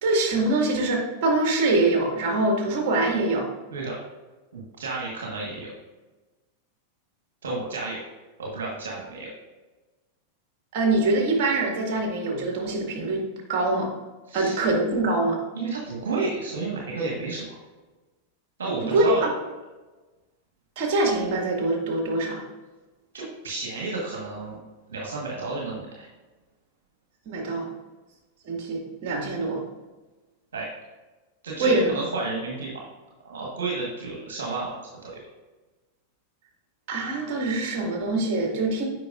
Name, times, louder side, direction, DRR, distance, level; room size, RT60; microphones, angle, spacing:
voice 1, 0.0-3.5 10.7-13.2 13.5-13.9 14.3-15.4 18.9-19.3 20.8-22.4 27.3-27.7 28.5-29.6 31.6-31.9 36.9-38.9, right 2 dB, 55° right, 0 dB, 2.0 m, -24 dB
voice 2, 4.5-5.7 7.4-8.0 8.4-9.3 14.3-14.6 15.5-17.6 18.6-19.3 23.1-24.6 24.9-26.1 30.5-30.7 31.4-32.7 33.2-34.8 35.0-35.2, right 3 dB, 75° right, -3 dB, 1.5 m, -31 dB
8.4 x 5.6 x 2.5 m, 1.2 s
hypercardioid pair, 95°, 0 cm